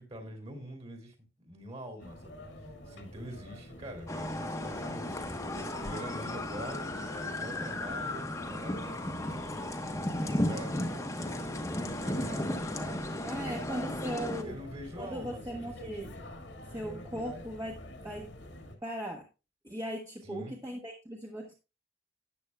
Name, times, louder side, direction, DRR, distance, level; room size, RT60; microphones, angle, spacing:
voice 1, 0.0-2.4 2.9-9.4 10.2-14.0 14.3-16.2 20.2-20.6, equal, 35° right, 5 dB, 3.0 m, -45 dB
sound 1, 2.0-18.8, left 1 dB, 80° left, 2.0 m, -47 dB
sound 2, 4.1-14.4, left 1 dB, 15° left, 1.1 m, -35 dB
voice 2, 13.2-14.6 15.0-16.2 16.7-18.3 18.8-19.3 19.6-21.5, equal, 15° right, -2 dB, 1.2 m, -38 dB
13.5 x 8.8 x 2.3 m, 0.30 s
head